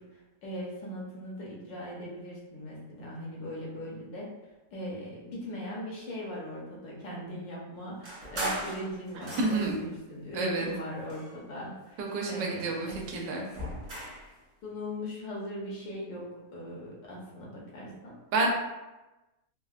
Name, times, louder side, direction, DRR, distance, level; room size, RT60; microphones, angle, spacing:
voice 1, 0.0-4.3 4.7-12.0 12.3-13.3 14.6-18.1, equal, 85° left, -4 dB, 1.5 m, -39 dB
sound 1, 8.0-9.9 10.6-11.7 12.1-14.3, right 1 dB, 50° right, 0.5 m, -39 dB
voice 2, 9.4-9.8 10.3-10.7 12.0-13.5 18.3-18.5, right 2 dB, 85° right, 0 dB, 1.3 m, -29 dB
3.7 x 2.1 x 2.4 m, 1.1 s
omnidirectional pair, 1.9 m